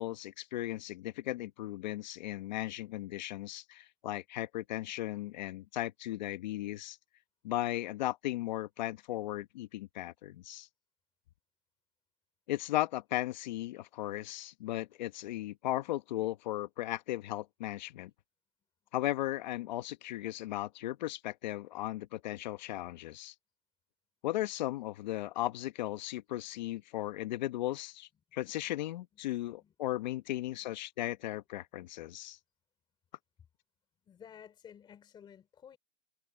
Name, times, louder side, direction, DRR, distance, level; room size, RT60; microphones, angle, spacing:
voice 1, 0.0-7.0 7.4-10.7 12.5-18.1 18.9-23.3 24.2-32.4, left 15 dB, 35° left, 1.4 m, -36 dB
voice 2, 29.4-29.9 34.0-35.8, left 8 dB, 10° left, 3.4 m, -55 dB
hypercardioid pair, 165°, 39 cm